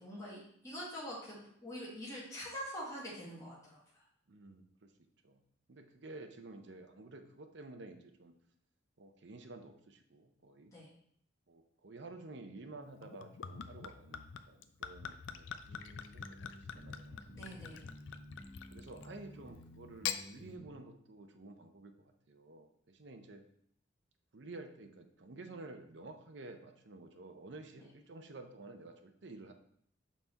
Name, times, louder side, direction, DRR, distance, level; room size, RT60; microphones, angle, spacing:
voice 1, 0.0-4.0 10.7-10.9 17.3-17.8, equal, 15° left, -7 dB, 2.0 m, -45 dB
voice 2, 4.3-4.9 5.2-5.4 5.7-8.3 9.0-10.7 11.5-17.3 18.7-23.4 24.3-29.5, right 2 dB, 65° right, 5 dB, 0.7 m, -51 dB
Gurgling / Chink clink / Liquid, 13.0-19.2 19.8-20.2, left 7 dB, 75° left, 0.4 m, -44 dB
sound 1, 15.7-20.7, equal, 60° left, 1.8 m, -54 dB
5.8 x 4.2 x 4.6 m, 0.66 s
head